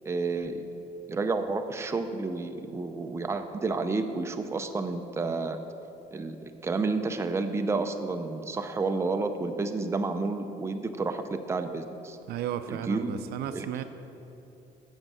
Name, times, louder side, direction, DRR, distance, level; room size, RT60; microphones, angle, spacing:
voice 1, 0.0-0.7 1.1-5.6 6.1-12.2 12.7-13.1 13.5-13.8, right 3 dB, 15° right, 6 dB, 0.5 m, -30 dB
voice 2, 12.3-13.8, right 10 dB, 70° right, 10 dB, 0.5 m, -34 dB
7.6 x 7.1 x 6.1 m, 2.9 s
cardioid pair, 110°, 17 cm